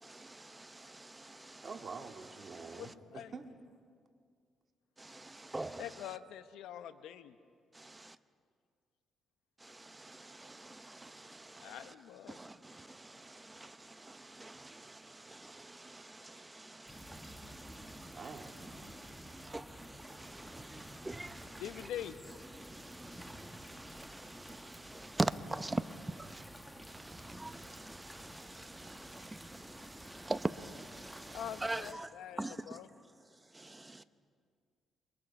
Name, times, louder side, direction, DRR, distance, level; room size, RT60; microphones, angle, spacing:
voice 1, 0.0-1.7 2.4-2.9 5.0-6.2 7.7-7.8 9.6-11.9 12.3-21.9 22.5-26.5 27.1-32.9 33.5-34.0, right 2 dB, 15° right, 0.8 m, -44 dB
voice 2, 1.6-3.5 18.1-19.0, right 4 dB, 40° right, 2.0 m, -47 dB
voice 3, 2.8-3.3 5.8-7.3 11.6-12.4 21.6-22.2 31.3-32.9, left 10 dB, 85° left, 0.9 m, -44 dB
sound 1, 16.9-31.9, equal, ahead, 1.4 m, -51 dB
28.5 x 23.5 x 5.5 m
cardioid pair, 90°, 0 cm